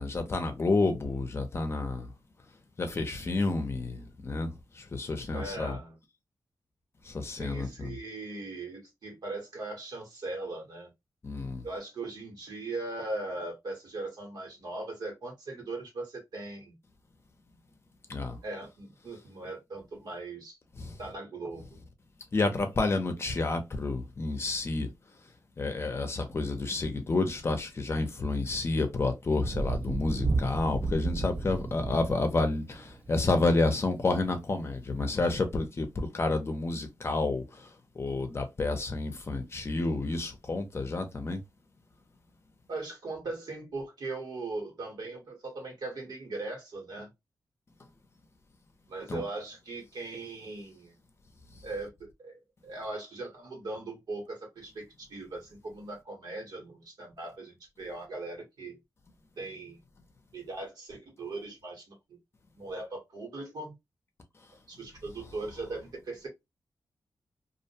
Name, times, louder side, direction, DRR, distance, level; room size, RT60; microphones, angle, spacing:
voice 1, 0.0-2.1 2.8-5.8 7.0-7.9 11.2-11.6 18.1-18.4 20.8-21.0 22.3-24.9 25.6-41.4 49.1-49.2, left 3 dB, 40° left, 0.6 m, -30 dB
voice 2, 5.3-6.0 7.4-10.9 11.6-16.7 18.4-20.6 21.0-21.7 42.7-47.1 48.9-50.9 51.6-58.8 59.4-59.8 60.3-62.2 62.5-63.7 64.7-66.3, right 2 dB, 80° right, 1.3 m, -39 dB
Thunder, 29.4-33.3 34.6-34.7, right 3 dB, 25° right, 0.4 m, -32 dB
2.4 x 2.2 x 2.7 m
wide cardioid pair, 110°, 7 cm